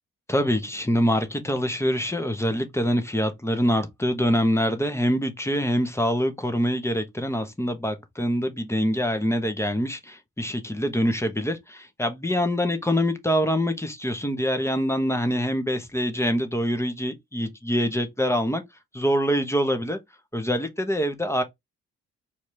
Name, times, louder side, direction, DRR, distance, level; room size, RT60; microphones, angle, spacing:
voice 1, 0.3-18.6 18.9-20.0 20.3-21.4, equal, 5° left, 1.3 m, -25 dB
4.6 x 2.9 x 3.4 m
hypercardioid pair, 45°, 39 cm